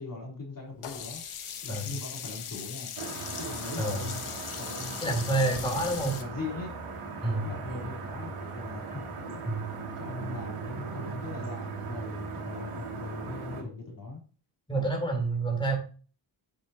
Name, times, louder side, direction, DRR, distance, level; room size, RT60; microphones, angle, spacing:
voice 1, 0.0-2.9 3.4-4.3 4.6-6.7 7.2-9.4 10.0-14.2 14.7-14.8, left 3 dB, 40° left, -2 dB, 3.6 m, -40 dB
Sink (filling or washing), 0.8-6.2, left 8 dB, 80° left, 1.3 m, -39 dB
sound 1, 3.0-13.6, right 4 dB, 90° right, 2.6 m, -38 dB
voice 2, 3.8-4.1 5.0-6.1 7.2-7.5 9.5-9.6 14.7-15.8, right 2 dB, 10° left, 0 dB, 3.6 m, -28 dB
8.7 x 8.2 x 2.9 m, 0.37 s
cardioid pair, 80°, 49 cm